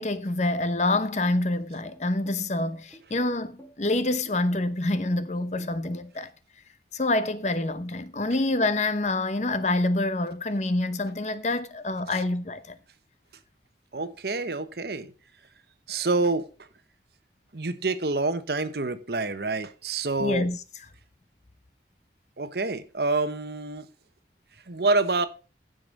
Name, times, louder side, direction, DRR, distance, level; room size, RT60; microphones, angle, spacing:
voice 1, 0.0-6.3 6.9-12.8 20.2-20.6, left 2 dB, 40° left, 0.8 m, -27 dB
sound 1, 0.9-6.2, right 1 dB, 15° left, 2.2 m, -51 dB
voice 2, 13.9-15.1 15.9-16.5 17.5-20.4 22.4-23.9 24.7-25.3, right 3 dB, 65° right, 1.0 m, -27 dB
15.5 x 5.3 x 5.3 m
head